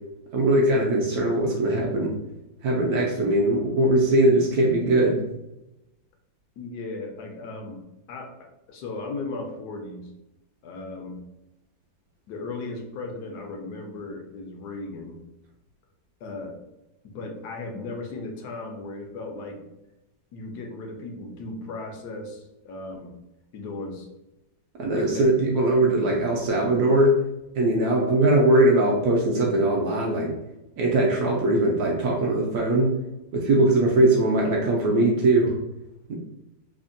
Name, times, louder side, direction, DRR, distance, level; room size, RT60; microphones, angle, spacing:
voice 1, 0.3-2.1 2.6-5.2 24.8-27.1 27.6-30.3 30.8-32.9 33.3-35.5 36.1-36.2, right 1 dB, 75° right, -2 dB, 0.9 m, -21 dB
voice 2, 6.6-7.8 8.1-10.1 10.6-11.2 12.3-15.2 16.2-16.6 17.0-19.6 20.3-23.1 23.5-24.1 24.8-25.3, left 3 dB, 70° left, 2 dB, 1.0 m, -36 dB
3.3 x 2.1 x 2.5 m, 0.92 s
omnidirectional pair, 2.0 m